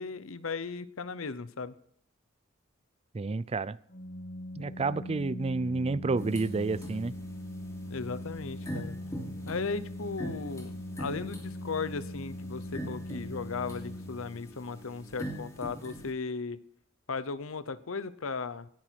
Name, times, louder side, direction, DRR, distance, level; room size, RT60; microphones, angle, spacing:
voice 1, 0.0-1.7 7.8-9.0 9.5-16.6 17.1-18.7, left 4 dB, 90° left, 15 dB, 0.8 m, -36 dB
voice 2, 3.1-3.8 4.6-7.1, right 3 dB, 30° right, 18 dB, 0.4 m, -30 dB
Organ, 3.9-14.7, left 1 dB, 60° left, 2.5 m, -41 dB
sound 1, 6.2-16.1, right 1 dB, 15° left, 3.0 m, -43 dB
18.0 x 10.0 x 4.6 m, 0.66 s
head